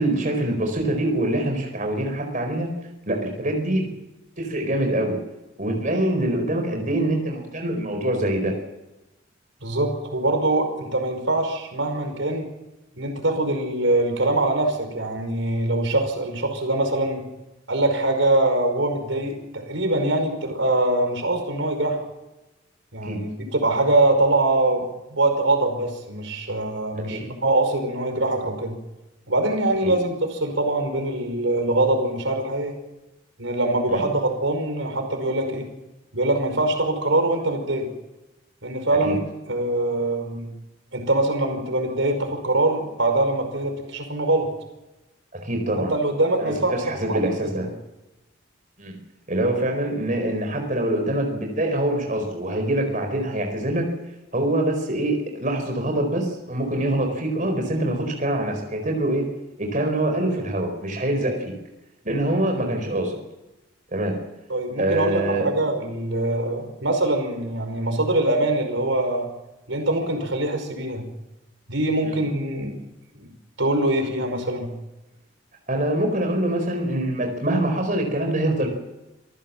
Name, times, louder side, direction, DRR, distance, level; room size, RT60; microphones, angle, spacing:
voice 1, 0.0-2.7 3.1-3.9 4.4-5.2 5.6-8.5 23.0-23.2 27.0-27.2 29.8-29.9 33.9-34.0 38.9-39.2 45.3-45.9 46.4-47.7 48.8-48.9 49.3-53.9 54.3-59.3 59.6-61.5 62.0-63.2 63.9-64.2 64.8-65.5 72.0-72.2 75.7-78.7, right 1 dB, 40° right, 3 dB, 4.6 m, -24 dB
voice 2, 9.6-12.5 13.0-17.2 17.7-22.0 22.9-24.9 25.1-28.8 29.3-32.8 33.4-35.7 36.1-37.9 38.6-39.2 39.5-40.5 40.9-44.5 45.8-47.6 64.5-69.3 69.7-71.1 71.7-72.7 73.1-73.3 73.6-74.7, right 2 dB, 80° right, 5 dB, 5.2 m, -23 dB
26.5 x 15.5 x 7.5 m, 0.99 s
head